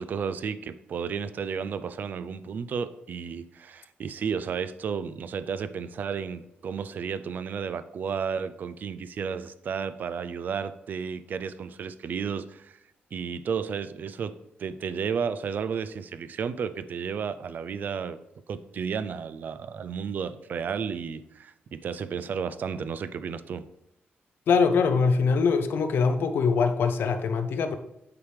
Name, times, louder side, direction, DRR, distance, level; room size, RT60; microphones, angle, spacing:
voice 1, 0.0-12.8 13.1-14.3 14.6-18.2 18.5-23.6, right 6 dB, 50° right, 14 dB, 0.3 m, -32 dB
voice 2, 24.5-27.8, left 5 dB, 70° left, 8 dB, 0.6 m, -23 dB
8.2 x 4.8 x 3.3 m, 0.84 s
wide cardioid pair, 160°, 4 cm